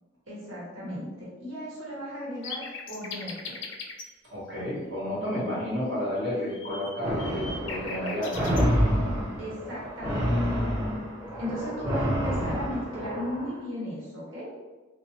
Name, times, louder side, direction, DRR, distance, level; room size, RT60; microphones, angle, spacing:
voice 1, 0.3-3.6 9.4-10.6 11.4-14.5, equal, 85° right, -7 dB, 1.0 m, -36 dB
sound 1, 2.4-4.1 6.2-8.7, left 4 dB, 60° left, 0.4 m, -39 dB
voice 2, 4.2-8.6 11.6-11.7, left 1 dB, 60° right, -8 dB, 1.0 m, -31 dB
sound 2, 7.0-13.5, equal, 15° right, 1.0 m, -28 dB
3.0 x 2.0 x 2.8 m, 1.3 s
head